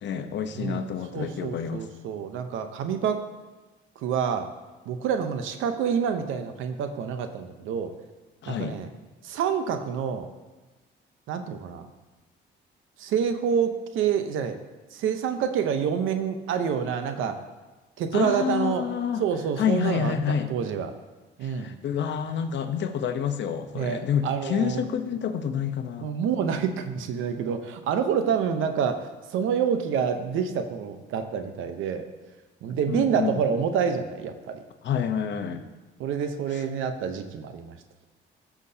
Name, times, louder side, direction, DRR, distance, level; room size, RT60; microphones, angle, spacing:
voice 1, 0.0-1.9 8.4-8.8 18.1-19.2 19.6-20.5 21.4-26.1 32.9-33.4 34.8-35.6 36.5-36.6, left 7 dB, 65° left, 8 dB, 0.9 m, -28 dB
voice 2, 1.1-3.2 4.0-4.5 4.9-7.9 8.5-8.9 9.2-10.3 11.3-11.9 13.0-14.6 14.9-17.4 18.0-18.8 19.2-20.9 21.4-21.7 23.7-24.8 26.0-32.0 32.6-34.6 36.0-37.8, right 7 dB, 90° right, 7 dB, 0.8 m, -27 dB
15.0 x 6.1 x 2.8 m, 1.2 s
cardioid pair, 90°, 20 cm